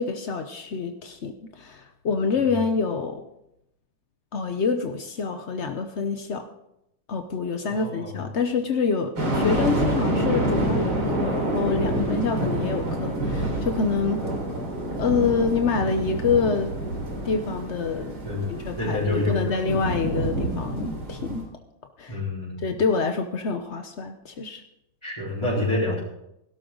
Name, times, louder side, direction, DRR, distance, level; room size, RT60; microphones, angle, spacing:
voice 1, 0.0-3.2 4.3-6.5 7.1-14.3 15.0-16.7 17.2-18.1 18.5-21.5 22.0-22.2 22.6-24.6, left 5 dB, 70° left, 6 dB, 0.6 m, -26 dB
voice 2, 7.6-8.2 18.2-18.5 18.8-19.6 22.1-22.7 25.0-26.0, left 2 dB, 10° left, -9 dB, 4.0 m, -27 dB
sound 1, 9.2-21.4, right 1 dB, 65° right, 4.2 m, -27 dB
17.0 x 12.0 x 3.9 m, 0.82 s
omnidirectional pair, 2.4 m